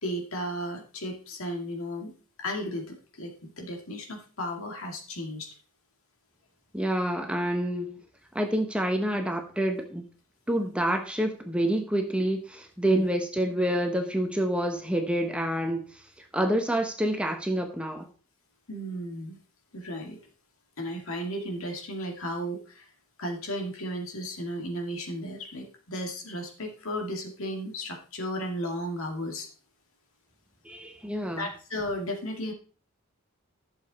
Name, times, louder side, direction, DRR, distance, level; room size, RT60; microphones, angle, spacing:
voice 1, 0.0-5.5 12.8-13.1 18.7-19.4 19.7-20.2 20.8-22.9 23.2-29.5 31.3-32.5, equal, 65° left, 2 dB, 2.3 m, -34 dB
voice 2, 6.7-8.0 8.3-10.0 10.5-18.1 30.6-31.5, right 1 dB, 5° right, 4 dB, 0.9 m, -28 dB
11.5 x 6.8 x 4.1 m, 0.38 s
head